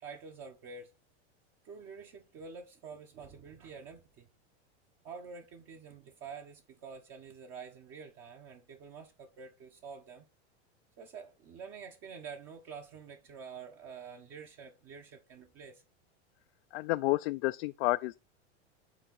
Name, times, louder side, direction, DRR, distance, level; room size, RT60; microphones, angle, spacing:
voice 1, 0.0-0.9 1.6-4.3 5.0-10.3 11.0-15.8, right 5 dB, 45° right, 1.3 m, -48 dB
voice 2, 16.7-18.2, left 19 dB, 60° left, 0.5 m, -30 dB
9.0 x 3.8 x 4.1 m
hypercardioid pair, 105°, 34 cm